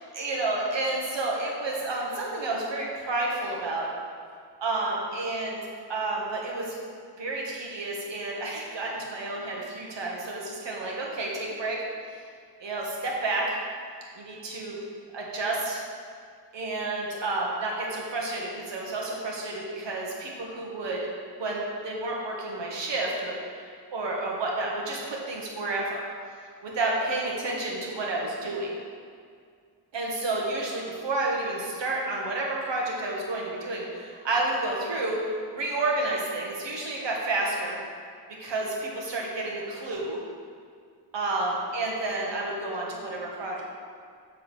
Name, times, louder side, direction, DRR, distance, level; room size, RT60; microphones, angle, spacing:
voice 1, 0.2-3.9 4.6-5.6 5.9-6.8 7.2-11.8 12.6-13.6 14.2-14.8 15.1-15.8 16.5-21.1 21.4-26.0 26.6-28.7 29.9-35.2 35.5-37.8 38.3-40.2 41.1-43.7, right 2 dB, 75° right, -2 dB, 1.5 m, -30 dB
7.2 x 3.7 x 6.0 m, 2.1 s
wide cardioid pair, 130°, 43 cm